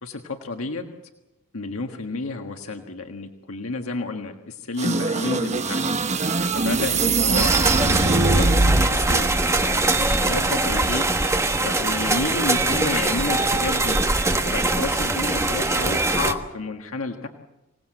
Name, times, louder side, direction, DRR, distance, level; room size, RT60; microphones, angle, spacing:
voice 1, 0.0-0.9 1.5-5.8 6.1-9.3 9.6-11.0 11.6-14.0 14.4-17.3, left 3 dB, 80° left, 4 dB, 1.6 m, -31 dB
sound 1, 4.8-9.1, right 3 dB, 35° right, 1.2 m, -21 dB
sound 2, 7.3-16.3, right 2 dB, 15° right, 1.3 m, -22 dB
26.0 x 18.0 x 7.8 m, 0.95 s
head